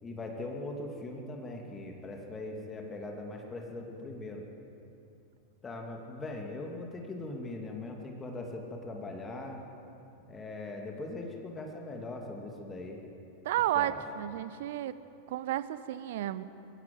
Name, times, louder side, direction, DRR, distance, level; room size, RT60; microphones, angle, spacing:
voice 1, 0.0-4.5 5.6-9.6 10.3-13.0 13.7-14.0, left 2 dB, 20° left, 1 dB, 2.8 m, -40 dB
voice 2, 13.4-14.9 15.3-16.4, right 13 dB, 55° right, 15 dB, 0.9 m, -32 dB
22.5 x 16.0 x 8.0 m, 2.8 s
figure-of-eight pair, 90°, 0 cm